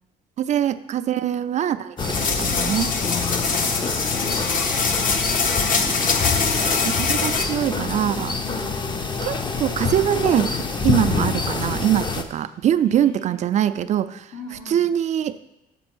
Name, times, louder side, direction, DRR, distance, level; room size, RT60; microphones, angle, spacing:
voice 1, 0.4-2.9 6.8-8.4 9.2-14.3 14.7-15.4, right 10 dB, 45° right, 13 dB, 0.4 m, -23 dB
sound 1, 2.0-7.4, left 5 dB, 55° left, 0.9 m, -23 dB
sound 2, 2.0-12.2, left 4 dB, 25° left, 0.6 m, -26 dB
voice 2, 3.1-6.0 8.4-8.8 12.8-13.3 14.3-14.9, left 2 dB, 85° left, -2 dB, 2.5 m, -41 dB
6.3 x 5.3 x 6.0 m, 0.94 s
cardioid pair, 110°, 17 cm